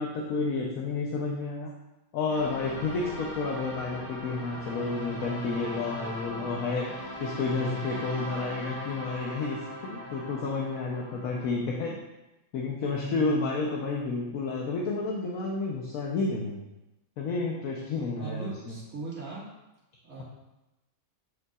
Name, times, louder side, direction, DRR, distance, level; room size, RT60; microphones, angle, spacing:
voice 1, 0.0-1.7 2.1-6.9 7.2-11.9 12.5-16.6 17.2-18.8, left 3 dB, 70° left, -2 dB, 1.2 m, -30 dB
sound 1, 2.3-11.6, equal, 25° left, 1.8 m, -39 dB
voice 2, 13.1-13.6 18.0-19.5 20.0-20.2, right 4 dB, 65° right, -7 dB, 2.5 m, -39 dB
9.7 x 5.4 x 2.4 m, 0.98 s
omnidirectional pair, 1.5 m